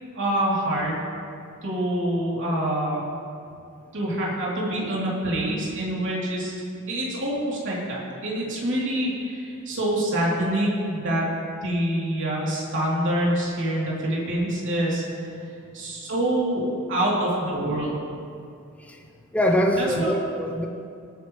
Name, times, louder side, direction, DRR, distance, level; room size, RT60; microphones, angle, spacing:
voice 1, 0.1-1.1 1.6-3.0 3.9-6.6 6.9-11.3 11.6-15.3 15.7-18.0 19.8-20.1, right 1 dB, 60° right, -5 dB, 3.1 m, -26 dB
voice 2, 19.3-20.7, equal, 5° left, 1 dB, 0.7 m, -23 dB
19.0 x 9.0 x 3.2 m, 2.5 s
head